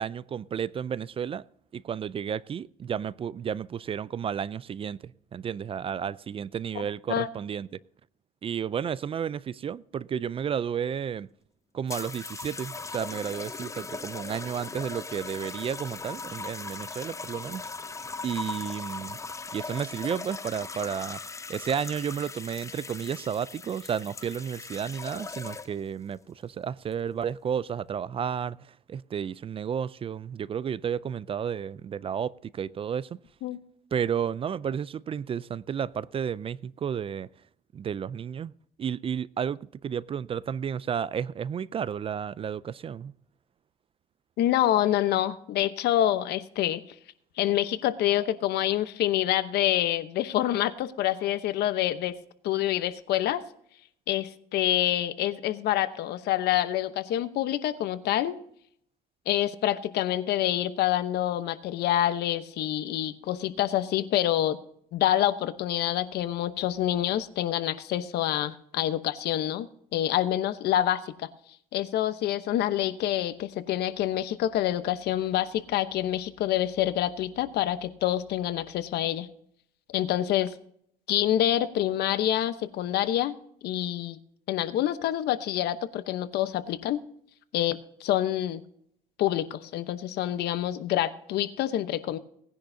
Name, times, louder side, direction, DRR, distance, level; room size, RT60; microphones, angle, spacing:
voice 1, 0.0-1.4 1.7-7.7 8.4-11.3 11.7-17.6 18.2-19.2 19.5-21.2 21.5-33.1 33.9-37.3 37.7-38.5 38.8-43.1, right 8 dB, 35° right, 0.4 m, -32 dB
sound 1, 11.9-25.9 26.8-27.1, left 4 dB, 20° left, 0.6 m, -39 dB
voice 2, 44.4-46.8 47.4-52.1 52.4-53.4 54.1-58.4 59.3-64.6 64.9-71.3 71.7-79.3 79.9-80.5 81.1-83.3 83.6-84.2 84.5-87.0 87.5-88.6 89.2-92.2, left 12 dB, 75° left, 0.9 m, -27 dB
18.5 x 10.5 x 2.7 m
cardioid pair, 110°, 17 cm